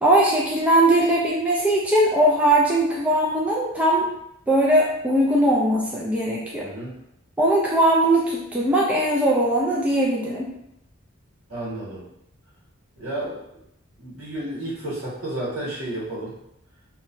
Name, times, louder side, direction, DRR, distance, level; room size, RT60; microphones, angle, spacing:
voice 1, 0.0-4.1 4.5-6.7 7.4-10.5, right 1 dB, 5° right, -4 dB, 0.3 m, -20 dB
voice 2, 6.6-6.9 11.5-12.1 13.0-13.6 14.0-16.4, right 1 dB, 80° right, -6 dB, 1.2 m, -32 dB
2.9 x 2.1 x 2.5 m, 0.79 s
head